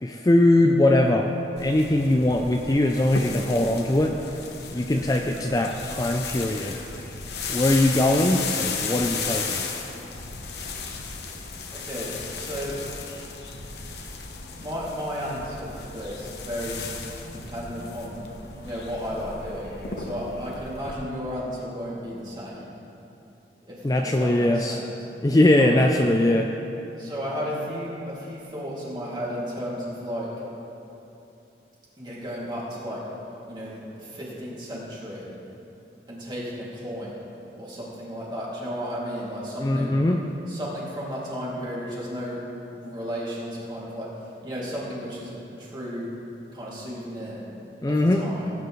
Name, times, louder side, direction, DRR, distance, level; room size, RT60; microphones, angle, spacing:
voice 1, 0.0-1.3 1.6-4.2 4.7-6.8 7.5-9.6 23.8-24.8 25.2-26.5 39.6-40.2 47.8-48.3, left 1 dB, 20° left, 2 dB, 0.4 m, -21 dB
sound 1, 1.6-20.9, left 4 dB, 70° left, 1.0 m, -35 dB
voice 2, 11.7-12.8 13.6-13.7 14.6-16.8 17.5-18.2 18.6-22.7 23.7-24.8 25.6-25.8 27.0-30.3 32.0-33.0 33.5-35.2 36.1-37.2 37.6-40.0 40.5-42.4 42.8-44.1 44.4-46.1 46.5-47.4 47.8-48.5, equal, 25° right, -6 dB, 2.5 m, -34 dB
17.5 x 9.3 x 3.2 m, 2.9 s
head